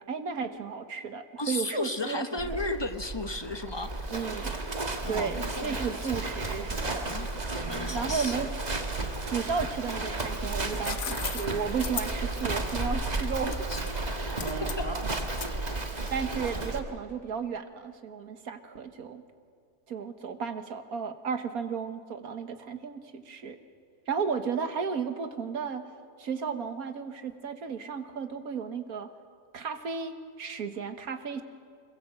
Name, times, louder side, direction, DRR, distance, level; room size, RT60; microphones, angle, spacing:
voice 1, 0.0-2.3 2.5-2.6 4.1-4.5 5.1-7.1 7.9-8.5 9.3-13.8 16.1-19.2 19.9-23.6 24.1-25.9 26.2-29.1 29.5-31.4, right 6 dB, 70° right, 8 dB, 1.8 m, -34 dB
voice 2, 1.4-4.0 5.0-5.9 7.1-7.3 7.7-8.4 13.7-13.8 14.6-14.9, left 2 dB, 20° left, 8 dB, 0.9 m, -34 dB
Livestock farm animals working animals, 2.4-16.8, right 2 dB, 30° right, 1.6 m, -33 dB
sound 1, 10.6-16.4, left 9 dB, 70° left, 1.3 m, -39 dB
25.0 x 21.5 x 7.8 m, 2.1 s
omnidirectional pair, 1.6 m